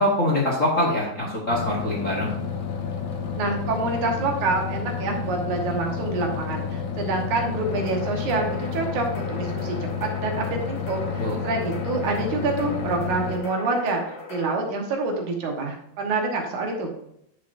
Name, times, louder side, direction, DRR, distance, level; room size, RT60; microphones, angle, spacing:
voice 1, 0.0-2.3 11.2-11.4, left 1 dB, 45° left, -2 dB, 1.0 m, -23 dB
sound 1, 1.5-13.4, left 6 dB, 65° left, 1.5 m, -30 dB
voice 2, 3.4-16.9, right 3 dB, 80° right, 2 dB, 2.8 m, -27 dB
sound 2, 7.7-14.5, left 3 dB, 90° left, 3.3 m, -39 dB
9.5 x 7.0 x 2.6 m, 0.75 s
omnidirectional pair, 3.4 m